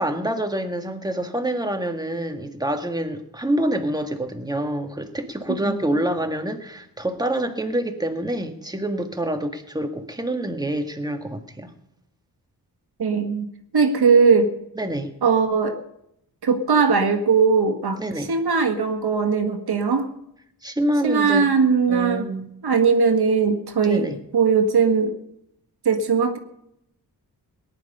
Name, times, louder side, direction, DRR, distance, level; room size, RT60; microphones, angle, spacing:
voice 1, 0.0-11.7 14.8-15.1 18.0-18.3 20.6-21.5 21.9-22.5 23.8-24.2, right 1 dB, 10° right, 5 dB, 1.7 m, -26 dB
voice 2, 13.0-13.5 13.7-14.5 15.2-15.8 16.4-20.1 21.0-22.3 22.6-25.2 25.9-26.4, right 5 dB, 75° right, 5 dB, 1.9 m, -19 dB
18.5 x 10.5 x 5.5 m, 0.77 s
wide cardioid pair, 115°, 38 cm